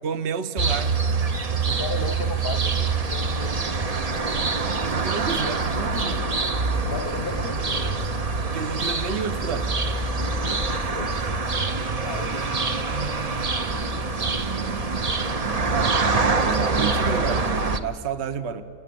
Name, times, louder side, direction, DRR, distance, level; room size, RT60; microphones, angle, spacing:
voice 1, 0.0-0.9 4.8-6.3 8.5-9.7 14.2-14.4 15.7-16.0 16.5-17.5 17.8-18.6, right 6 dB, 50° right, 10 dB, 1.3 m, -30 dB
sound 1, 0.6-17.8, right 4 dB, 30° right, 0.8 m, -25 dB
voice 2, 1.7-4.2 6.9-8.1 10.7-11.1 12.0-12.7, left 5 dB, 45° left, 13 dB, 0.9 m, -35 dB
29.5 x 25.5 x 7.8 m, 2.6 s
omnidirectional pair, 1.6 m